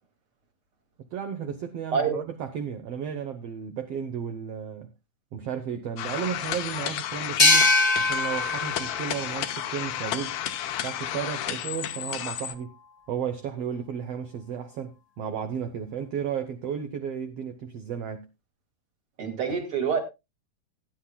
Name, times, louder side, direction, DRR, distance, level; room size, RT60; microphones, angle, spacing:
voice 1, 1.1-4.9 5.3-10.3 10.8-12.7 13.1-18.3, right 8 dB, 75° right, 1.4 m, -33 dB
sound 1, 6.0-12.5, left 10 dB, 70° left, 2.3 m, -32 dB
sound 2, 7.4-10.8, left 2 dB, 50° left, 0.4 m, -24 dB
voice 2, 19.2-20.0, right 6 dB, 45° right, 2.6 m, -26 dB
18.5 x 10.0 x 2.2 m
omnidirectional pair, 3.9 m